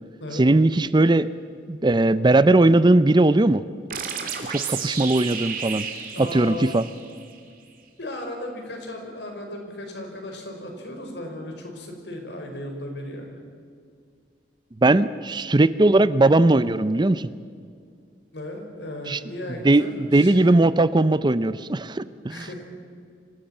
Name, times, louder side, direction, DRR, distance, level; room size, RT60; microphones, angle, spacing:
voice 1, 0.3-1.3 1.7-3.6 4.5-5.9 6.2-6.9 14.8-17.3 19.1-19.2 19.6-19.8 20.1-22.5, right 2 dB, 25° right, 15 dB, 0.5 m, -19 dB
sound 1, 3.9-7.4, right 7 dB, 50° right, 3.1 m, -32 dB
voice 2, 6.1-6.7 8.0-13.4 18.3-20.6 22.3-22.6, left 1 dB, 70° left, 3 dB, 5.1 m, -36 dB
25.5 x 16.5 x 8.8 m, 2.2 s
head